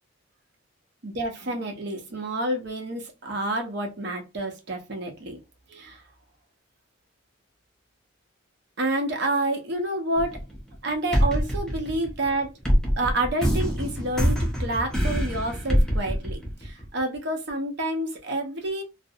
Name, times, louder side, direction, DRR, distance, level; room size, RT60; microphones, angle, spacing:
voice 1, 1.0-5.4 5.7-6.0 8.8-10.4 10.8-12.5 13.0-18.8, right 1 dB, 55° right, 0.7 m, -29 dB
sound 1, 10.2-10.8 11.1-17.0, equal, 5° left, 0.6 m, -24 dB
2.5 x 2.0 x 2.6 m
head